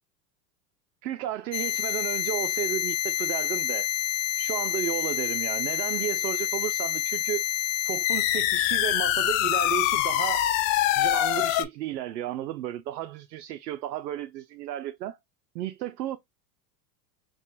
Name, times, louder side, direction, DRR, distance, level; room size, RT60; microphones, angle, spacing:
voice 1, 1.0-3.9 4.4-7.4 7.8-10.4 11.0-15.2 15.5-16.2, right 12 dB, 90° right, 0.6 m, -33 dB
sound 1, 1.5-11.6, left 12 dB, 50° left, 0.5 m, -26 dB
4.2 x 2.3 x 2.5 m
hypercardioid pair, 105°, 50 cm